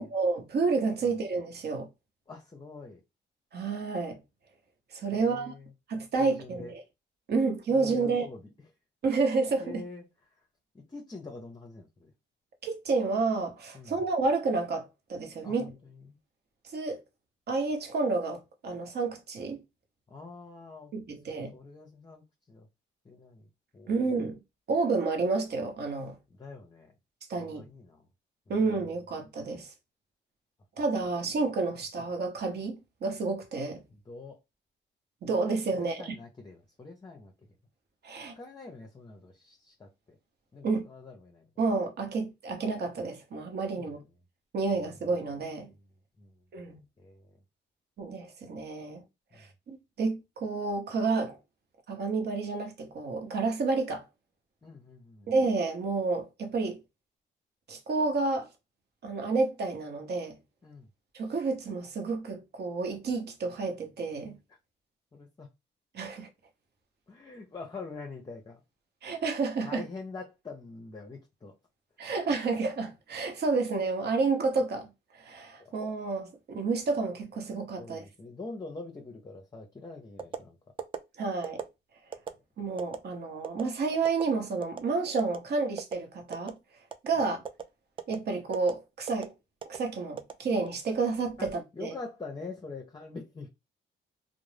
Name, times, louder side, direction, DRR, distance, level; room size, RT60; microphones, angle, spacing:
voice 1, 0.0-1.9 3.5-4.2 4.9-5.5 5.9-6.8 7.3-8.3 9.0-9.8 12.6-15.7 16.7-17.0 17.5-19.6 20.9-21.5 23.9-24.4 24.7-26.2 27.3-27.7 28.5-29.7 30.8-33.8 35.2-36.1 38.0-38.3 40.6-40.8 41.6-44.0 44.5-45.7 46.5-46.8 48.0-49.0 49.4-51.4 51.9-54.0 55.3-56.8 57.7-58.5 59.0-60.4 61.1-64.4 65.9-66.3 69.0-69.8 72.0-74.9 75.2-78.0 81.2-81.6 82.6-86.5 87.0-87.4 88.1-89.3 89.7-91.9, right 4 dB, 55° right, 0.9 m, -30 dB
voice 2, 2.3-3.0 5.1-5.7 6.2-6.7 7.7-8.5 9.6-10.0 10.4-10.5 10.7-12.1 13.7-14.0 15.4-16.2 20.1-22.7 23.0-23.5 23.7-24.0 26.3-26.9 27.3-28.1 28.5-28.7 33.9-34.4 35.7-37.3 38.3-40.2 40.5-41.5 43.8-44.0 45.7-45.8 46.2-46.4 47.0-47.4 49.3-49.5 54.6-55.3 60.6-60.9 65.1-65.5 67.1-68.6 69.6-71.5 75.6-75.8 77.8-80.6 91.4-93.5, left 3 dB, 20° left, 0.6 m, -45 dB
sound 1, 80.2-80.4 80.8-81.0 81.4-81.7 82.1-82.3 82.8-83.0 83.4-83.6 84.0-84.2 84.6-84.8 85.2-85.4 85.8-85.9 86.3-86.6 86.9-87.1 87.4-87.6 88.0-88.2 88.5-88.7 89.1-89.3 89.6-89.8 90.2-90.8 91.2-91.5, right 7 dB, 25° right, 0.3 m, -36 dB
2.5 x 2.0 x 3.2 m
cardioid pair, 90°, 20 cm